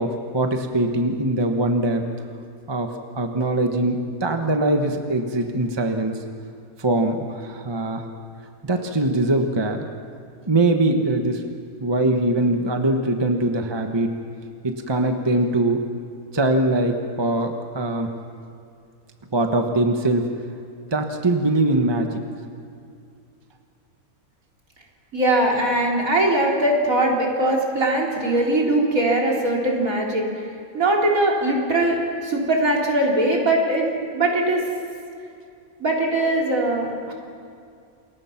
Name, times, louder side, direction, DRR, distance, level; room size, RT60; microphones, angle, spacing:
voice 1, 0.0-2.1 2.7-6.2 6.8-8.1 8.6-9.9 10.5-11.4 11.8-14.1 14.6-15.8 16.3-18.1 19.3-20.3 20.9-22.2, right 2 dB, 20° right, 4 dB, 1.2 m, -22 dB
voice 2, 25.1-30.2 30.7-34.6 35.8-37.1, right 1 dB, 65° right, -2 dB, 4.1 m, -21 dB
28.5 x 22.5 x 5.9 m, 2.4 s
omnidirectional pair, 1.6 m